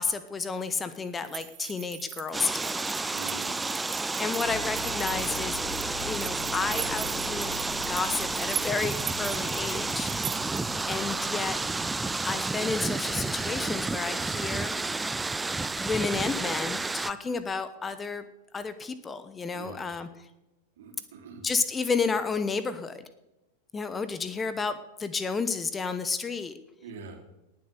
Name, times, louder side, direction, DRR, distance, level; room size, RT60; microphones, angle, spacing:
voice 1, 0.0-2.9 4.2-5.6 6.0-7.6 7.9-10.1 10.9-11.6 12.2-14.7 15.8-18.2 18.5-20.1 21.4-23.1 23.7-26.6, left 4 dB, 15° left, 12 dB, 1.0 m, -31 dB
sound 1, 1.2-10.8, right 14 dB, 35° right, 0.9 m, -40 dB
sound 2, 2.3-17.1, right 3 dB, 10° right, 0.4 m, -31 dB
voice 2, 3.1-3.6 19.5-20.0 20.8-21.5 26.8-27.2, right 4 dB, 55° right, 3 dB, 3.1 m, -44 dB
sound 3, 4.4-17.3, left 6 dB, 60° left, 1.1 m, -46 dB
19.0 x 7.6 x 6.8 m, 0.96 s
figure-of-eight pair, 90°, 0 cm